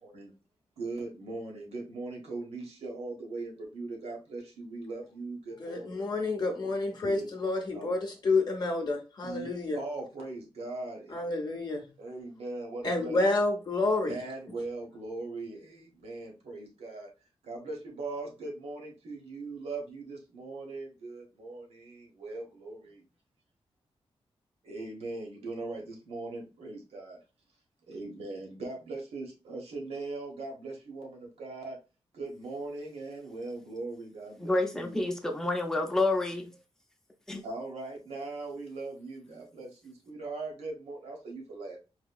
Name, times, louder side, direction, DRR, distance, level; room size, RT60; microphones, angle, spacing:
voice 1, 0.8-5.9 7.0-7.2 7.7-7.9 9.2-9.5 9.7-11.0 12.0-13.2 14.1-15.6 16.0-17.1 17.5-21.6 22.2-22.8 24.7-27.2 27.9-31.1 31.4-31.7 32.2-35.1 37.4-39.7 40.1-41.8, right 3 dB, 85° right, 1.2 m, -39 dB
voice 2, 5.6-9.8 11.1-11.9 12.8-14.2, left 2 dB, 45° left, 0.7 m, -29 dB
voice 3, 34.4-36.5 37.3-37.4, left 2 dB, 5° left, 0.5 m, -29 dB
4.0 x 2.8 x 2.3 m
wide cardioid pair, 130°, 10 cm